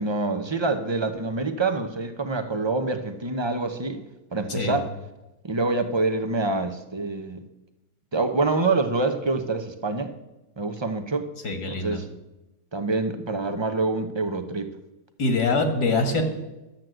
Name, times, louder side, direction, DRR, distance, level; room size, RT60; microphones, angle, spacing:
voice 1, 0.0-4.0 4.3-4.9 5.4-7.4 8.1-10.1 10.6-11.3 11.7-12.1 12.7-14.7, right 3 dB, 30° right, 8 dB, 0.5 m, -26 dB
voice 2, 11.4-12.0 15.2-16.2, left 3 dB, 80° left, 6 dB, 2.3 m, -24 dB
12.0 x 7.6 x 7.8 m, 0.99 s
omnidirectional pair, 1.7 m